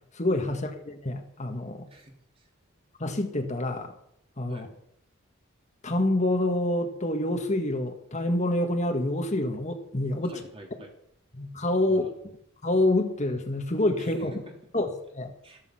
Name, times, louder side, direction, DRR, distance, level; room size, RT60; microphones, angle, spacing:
voice 1, 0.1-1.8 3.0-3.9 4.4-4.7 5.8-10.4 11.3-12.1 12.6-14.3 14.7-15.3, left 1 dB, 35° left, 4 dB, 1.7 m, -27 dB
voice 2, 1.9-2.5 4.5-4.7 10.2-10.9 11.8-12.1 14.0-14.6 15.4-15.6, right 1 dB, 25° right, 2 dB, 3.0 m, -48 dB
14.0 x 13.5 x 5.8 m, 0.68 s
head